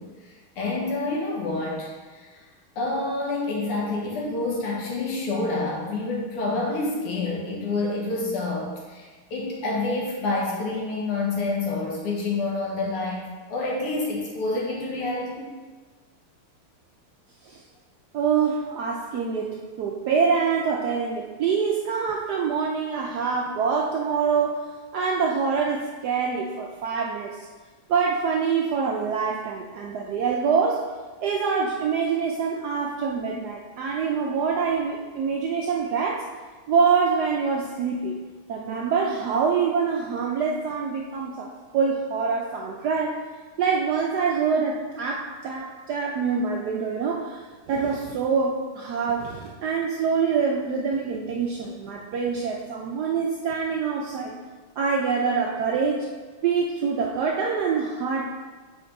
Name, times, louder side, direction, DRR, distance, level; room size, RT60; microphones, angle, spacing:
voice 1, 0.0-2.4 2.8-13.2 13.5-15.5, left 2 dB, 85° left, -3 dB, 2.3 m, -28 dB
voice 2, 18.1-24.6 24.9-27.5 27.9-30.9 31.2-36.3 36.7-38.2 38.5-43.2 43.6-54.3 54.8-56.1 56.4-58.3, right 5 dB, 90° right, -1 dB, 0.8 m, -25 dB
7.6 x 4.4 x 3.9 m, 1.4 s
omnidirectional pair, 2.4 m